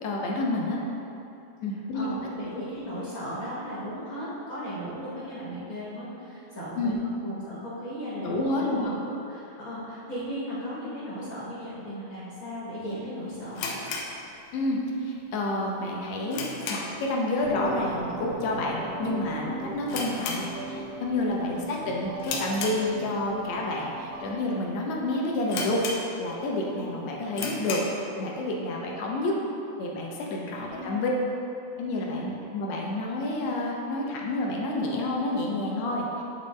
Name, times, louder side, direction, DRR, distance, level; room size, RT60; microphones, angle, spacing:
voice 1, 0.0-0.8 1.6-2.1 2.5-2.6 6.8-6.9 8.2-9.0 14.5-25.9 26.2-27.8 28.2-29.3 29.8-31.1 31.8-36.2, left 2 dB, 70° left, -2 dB, 1.7 m, -29 dB
voice 2, 1.9-13.6 21.4-21.8 26.6-26.9 30.6-31.1, equal, 40° left, -10 dB, 1.1 m, -36 dB
sound 1, 13.5-14.9 15.2-15.3 15.8-17.1 17.4-17.7 18.0-18.1 18.8-19.1 19.3-19.4 19.8-21.0 21.4-21.7 22.2-23.3 23.9-24.0 24.6-24.7 24.9-25.0 25.5-26.5 26.8-26.9 27.3-28.0, left 4 dB, 85° left, 2.3 m, -34 dB
sound 2, 17.4-24.4, right 2 dB, 90° right, 2.2 m, -39 dB
9.8 x 4.0 x 3.2 m, 2.9 s
omnidirectional pair, 3.7 m